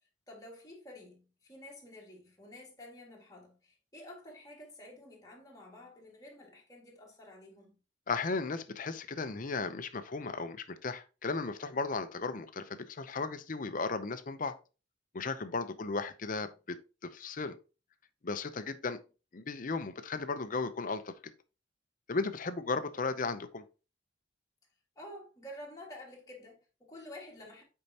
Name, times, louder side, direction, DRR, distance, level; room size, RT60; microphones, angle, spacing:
voice 1, 0.3-7.7 15.7-15.9 22.6-22.7 25.0-27.6, left 1 dB, 20° left, 1.9 m, -50 dB
voice 2, 8.1-14.6 15.1-16.8 17.0-17.6 18.2-19.0 19.3-21.1 22.1-23.6, left 4 dB, 45° left, 0.6 m, -35 dB
8.4 x 4.5 x 2.8 m
head